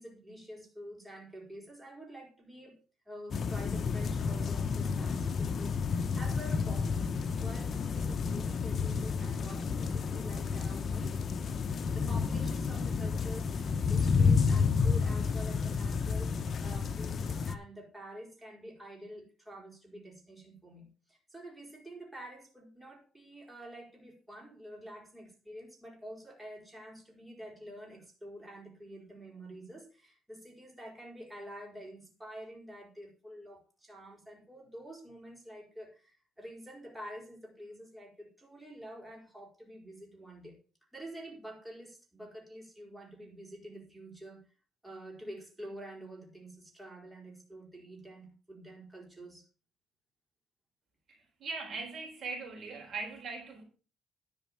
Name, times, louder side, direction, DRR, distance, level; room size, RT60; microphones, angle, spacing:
voice 1, 0.0-2.8 3.0-11.2 11.9-40.6 40.9-44.5 44.8-49.4, right 1 dB, 10° right, -2 dB, 4.8 m, -48 dB
sound 1, 3.3-17.6, left 5 dB, 45° left, 0.9 m, -30 dB
voice 2, 51.1-53.6, right 4 dB, 55° right, 2 dB, 4.1 m, -40 dB
11.0 x 5.5 x 7.5 m, 0.35 s
cardioid pair, 115°, 0 cm